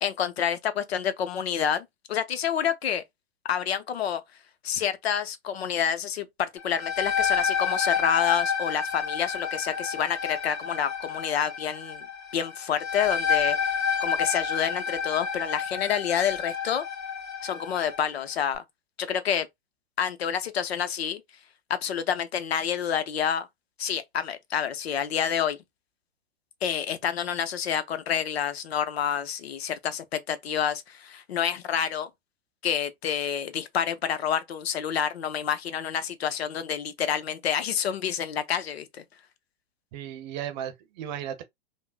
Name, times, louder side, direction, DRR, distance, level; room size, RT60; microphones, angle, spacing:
voice 1, 0.0-3.0 3.5-4.2 4.6-12.1 12.3-13.6 14.0-16.8 17.4-18.6 19.0-19.5 20.0-21.2 21.7-23.5 23.8-25.6 26.6-32.1 32.6-39.0, left 8 dB, 70° left, 0.6 m, -28 dB
sound 1, 6.6-18.1, left 6 dB, 35° left, 1.8 m, -29 dB
voice 2, 39.9-41.4, right 10 dB, 45° right, 0.7 m, -35 dB
3.5 x 2.1 x 2.4 m
hypercardioid pair, 110°, 32 cm